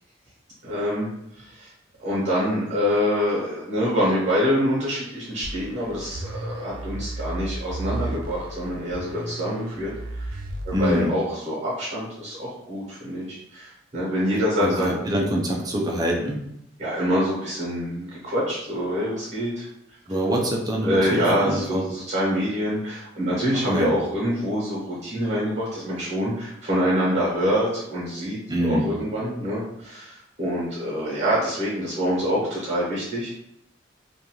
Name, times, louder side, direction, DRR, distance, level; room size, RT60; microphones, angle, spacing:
voice 1, 0.6-1.1 1.4-1.7 2.0-10.3 10.6-15.0 16.8-19.7 20.8-33.4, equal, 35° right, -6 dB, 0.9 m, -26 dB
sound 1, 5.4-11.0, right 2 dB, 85° right, 0.4 m, -33 dB
voice 2, 10.7-11.1 14.6-16.4 20.1-21.8 23.5-24.0 28.5-28.9, equal, 20° right, -1 dB, 0.4 m, -25 dB
2.5 x 2.2 x 2.9 m, 0.78 s
head